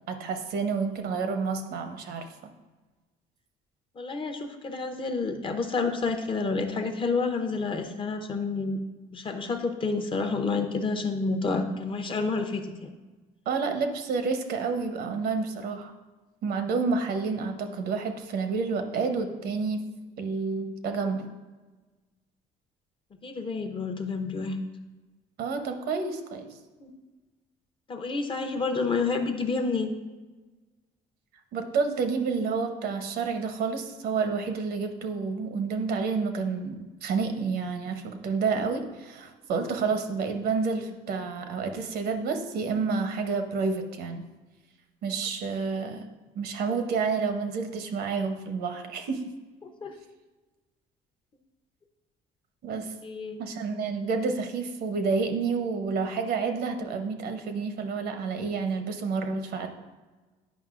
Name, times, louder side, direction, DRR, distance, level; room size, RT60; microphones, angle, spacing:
voice 1, 0.1-2.3 13.5-15.9 16.4-19.8 20.2-21.3 25.4-26.5 31.5-44.3 45.0-46.0 46.3-49.2 52.6-52.9 53.4-59.7, right 4 dB, 70° right, 6 dB, 0.8 m, -29 dB
voice 2, 4.0-8.8 9.1-12.9 23.2-24.6 26.8-26.9 27.9-29.9 49.8-49.9 53.0-53.4, left 4 dB, 30° left, 6 dB, 0.7 m, -29 dB
9.3 x 5.3 x 2.5 m, 1.2 s
cardioid pair, 110°, 17 cm